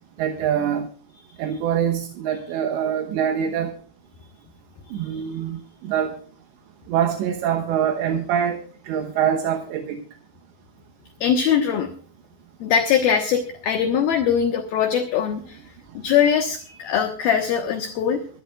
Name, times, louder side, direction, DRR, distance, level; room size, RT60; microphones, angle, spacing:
voice 1, 0.2-0.9 1.4-3.7 4.9-6.2 6.9-10.0, right 9 dB, 80° right, 5 dB, 3.2 m, -24 dB
voice 2, 11.2-11.9 12.6-15.6 15.9-18.2, left 8 dB, 65° left, 4 dB, 2.7 m, -21 dB
23.5 x 13.0 x 2.4 m, 0.43 s
omnidirectional pair, 5.2 m